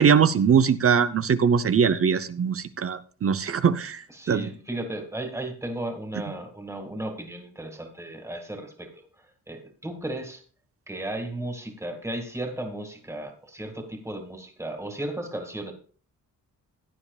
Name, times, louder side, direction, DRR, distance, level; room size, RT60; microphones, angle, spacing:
voice 1, 0.0-4.0 4.3-4.5, right 7 dB, 45° right, 0.7 m, -21 dB
voice 2, 4.1-10.4 10.9-15.7, right 1 dB, 10° right, 2.2 m, -35 dB
16.5 x 9.5 x 2.4 m
cardioid pair, 110°, 33 cm